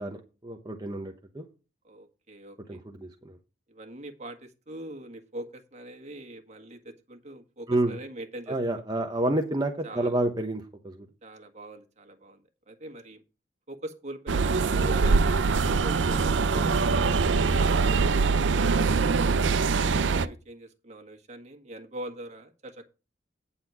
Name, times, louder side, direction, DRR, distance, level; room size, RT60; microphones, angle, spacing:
voice 1, 0.0-1.4 2.7-3.1 7.7-7.9 8.5-11.1 16.5-16.7, right 1 dB, 20° right, 3 dB, 0.9 m, -29 dB
voice 2, 1.8-2.8 3.7-8.8 9.8-10.2 11.2-13.2 13.7-15.2 15.6-16.3 16.9-19.1 19.7-22.8, right 1 dB, 40° right, 5 dB, 1.6 m, -43 dB
sound 1, 14.3-20.3, right 4 dB, 80° right, 0.5 m, -23 dB
9.3 x 4.1 x 7.2 m, 0.32 s
head